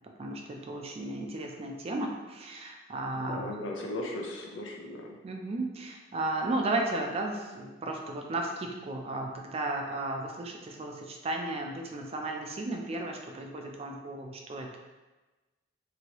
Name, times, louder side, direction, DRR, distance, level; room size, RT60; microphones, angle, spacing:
voice 1, 0.2-3.5 5.2-14.7, right 2 dB, 30° right, 2 dB, 0.4 m, -34 dB
voice 2, 3.1-5.2, left 1 dB, 80° left, 0 dB, 0.6 m, -37 dB
3.0 x 2.7 x 2.9 m, 1.2 s
head